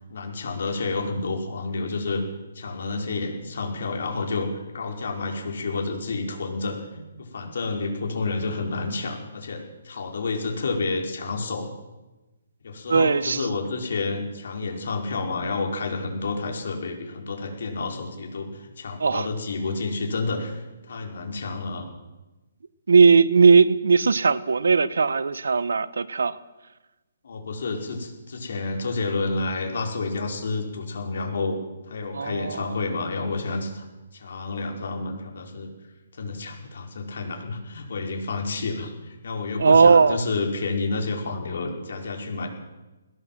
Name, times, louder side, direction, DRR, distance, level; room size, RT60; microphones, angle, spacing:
voice 1, 0.1-2.2 2.5-11.7 12.6-21.9 27.2-31.6 31.9-33.8 34.1-35.7 36.1-42.5, left 3 dB, 60° left, 5.5 m, -30 dB
voice 2, 12.9-13.4 19.0-19.3 22.9-26.4 32.1-32.6 39.6-40.2, right 5 dB, 85° right, 1.2 m, -18 dB
21.5 x 17.5 x 7.8 m
hypercardioid pair, 170°, 0 cm